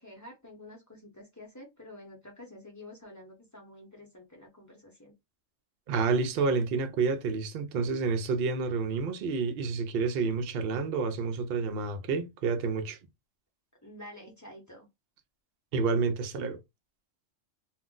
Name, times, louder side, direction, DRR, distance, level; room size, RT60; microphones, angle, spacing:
voice 1, 0.0-5.1 13.8-14.9, left 1 dB, 20° left, 0.6 m, -49 dB
voice 2, 5.9-13.0 15.7-16.6, right 4 dB, 60° right, 0.7 m, -29 dB
2.5 x 2.1 x 3.6 m
omnidirectional pair, 1.3 m